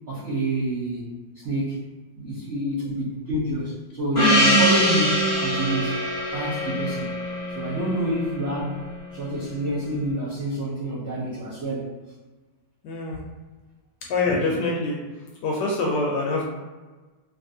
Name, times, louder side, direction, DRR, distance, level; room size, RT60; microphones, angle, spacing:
voice 1, 0.1-1.8 2.1-6.0 6.3-7.1 7.5-8.8 9.1-11.9, right 1 dB, 85° right, -9 dB, 0.6 m, -27 dB
Gong, 4.1-8.9, equal, 50° left, 0.6 m, -23 dB
voice 2, 12.8-13.2 14.0-16.5, left 3 dB, 75° left, -2 dB, 1.0 m, -25 dB
3.3 x 2.4 x 2.6 m, 1.3 s
omnidirectional pair, 2.2 m